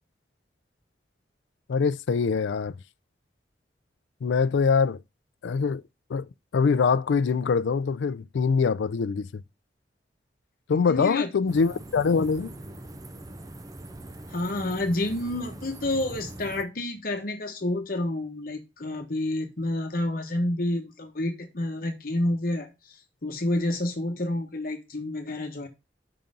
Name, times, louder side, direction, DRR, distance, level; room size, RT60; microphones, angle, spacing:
voice 1, 1.7-2.8 4.2-5.0 5.4-5.8 6.1-9.4 10.7-12.5, left 5 dB, 90° left, 0.4 m, -24 dB
voice 2, 10.7-11.3 14.3-25.7, left 1 dB, 50° left, 1.0 m, -29 dB
sound 1, 11.5-16.6, right 1 dB, 20° right, 0.5 m, -42 dB
5.9 x 3.7 x 5.2 m
head